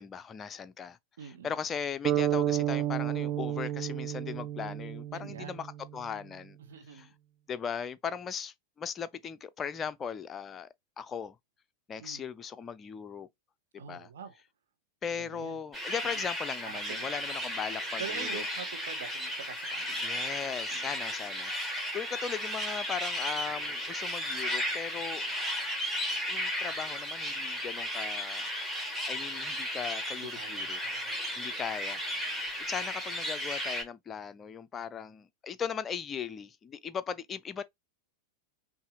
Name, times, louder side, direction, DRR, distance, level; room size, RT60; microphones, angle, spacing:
voice 1, 0.0-6.6 6.9-7.1 7.5-10.7 11.0-11.4 11.9-13.3 13.7-14.1 15.0-18.4 20.0-25.3 26.3-28.5 29.1-30.8 31.4-32.3 32.6-37.6, left 7 dB, 20° left, 0.4 m, -38 dB
voice 2, 1.2-1.6 5.1-5.5 6.6-7.1 12.0-12.2 13.8-14.4 15.2-15.5 16.0-16.1 16.6-17.3 18.0-20.3 20.7-21.0 30.2-31.2, right 7 dB, 60° right, 0.9 m, -45 dB
sound 1, 2.0-6.0, right 11 dB, 40° right, 0.5 m, -31 dB
sound 2, 15.7-33.8, equal, ahead, 1.6 m, -34 dB
5.5 x 2.5 x 2.3 m
figure-of-eight pair, 90°, 0 cm